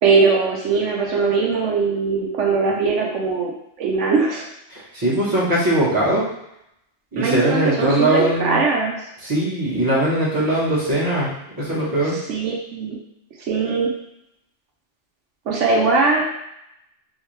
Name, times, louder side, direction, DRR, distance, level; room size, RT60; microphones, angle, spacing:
voice 1, 0.0-3.5 3.8-4.5 7.2-9.0 12.3-13.0 13.5-13.9 15.5-16.2, right 4 dB, 85° right, -2 dB, 1.1 m, -20 dB
voice 2, 4.7-6.2 7.1-8.6 9.2-12.2, right 1 dB, 20° right, -7 dB, 1.2 m, -20 dB
3.6 x 3.2 x 3.2 m, 0.79 s
omnidirectional pair, 1.2 m